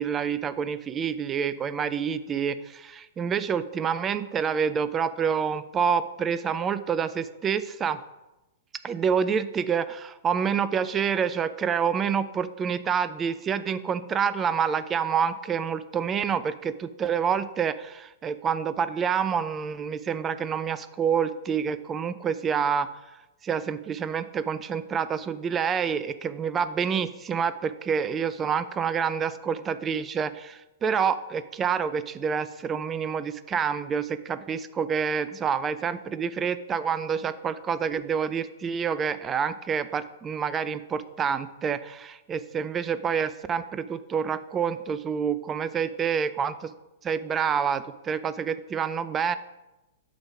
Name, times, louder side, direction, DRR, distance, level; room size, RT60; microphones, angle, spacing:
voice 1, 0.0-8.0 8.8-22.9 23.4-46.7 47.0-49.4, right 7 dB, 20° right, 14 dB, 0.4 m, -27 dB
8.7 x 3.6 x 5.9 m, 1.0 s
figure-of-eight pair, 105°, 0 cm